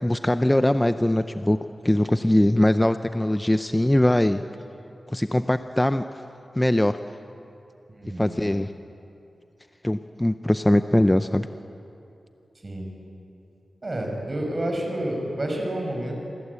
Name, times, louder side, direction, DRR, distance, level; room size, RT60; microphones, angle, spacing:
voice 1, 0.0-1.6 1.8-4.4 5.1-6.0 6.5-7.0 8.2-8.7 9.8-11.5, left 1 dB, 10° left, 9 dB, 0.5 m, -21 dB
voice 2, 8.0-8.3 12.6-12.9 13.8-16.1, right 1 dB, 25° right, 1 dB, 5.6 m, -29 dB
27.0 x 23.0 x 8.3 m, 2.8 s
wide cardioid pair, 175°, 0 cm